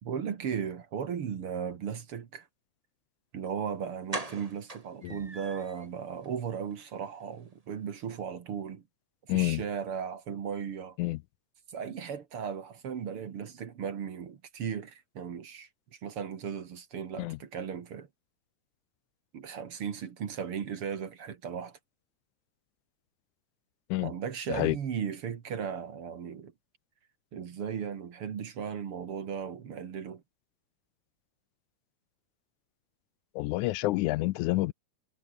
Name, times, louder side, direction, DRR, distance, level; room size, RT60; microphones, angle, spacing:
voice 1, 0.0-2.5 3.3-8.8 9.3-11.0 11.7-18.1 19.3-21.8 24.0-26.5 27.3-30.2, right 7 dB, 50° right, 2.4 m, -36 dB
sound 1, 3.4-3.5 4.1-5.9 6.2-6.3 6.7-6.9 7.1-7.2, right 2 dB, 15° right, 2.2 m, -40 dB
voice 2, 9.3-9.6 11.0-11.2 17.2-17.4 23.9-24.1 24.5-24.8 33.4-34.7, left 18 dB, 80° left, 2.1 m, -28 dB
omnidirectional pair, 3.5 m